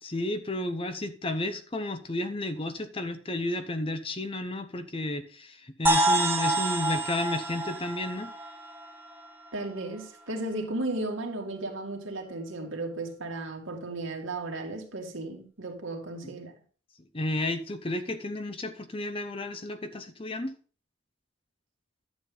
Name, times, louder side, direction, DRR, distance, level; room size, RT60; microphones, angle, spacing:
voice 1, 0.0-8.3 16.2-16.4 17.1-20.5, left 1 dB, 25° left, 0.7 m, -32 dB
sound 1, 5.9-9.6, right 1 dB, 10° right, 0.9 m, -28 dB
voice 2, 9.5-16.5, right 2 dB, 75° right, 2.2 m, -35 dB
11.5 x 7.3 x 3.9 m
head